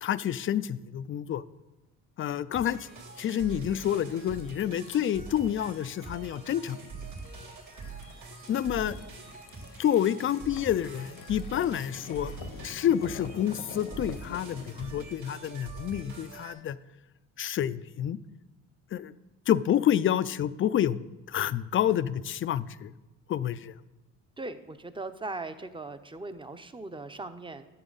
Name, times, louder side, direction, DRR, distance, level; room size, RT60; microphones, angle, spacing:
voice 1, 0.0-1.4 2.2-2.9 3.2-6.8 8.5-9.0 9.8-12.3 12.6-16.8 17.4-18.2 18.9-19.1 19.5-21.0 21.3-22.9 23.3-23.7, left 10 dB, 35° left, 16 dB, 0.4 m, -28 dB
sound 1, 2.5-16.5, right 4 dB, 50° right, 3.2 m, -44 dB
sound 2, 4.2-15.0, left 6 dB, 75° left, 0.9 m, -47 dB
voice 2, 24.4-27.7, right 2 dB, 15° right, 10 dB, 0.7 m, -39 dB
12.0 x 7.1 x 4.0 m, 1.0 s
supercardioid pair, 75°, 36 cm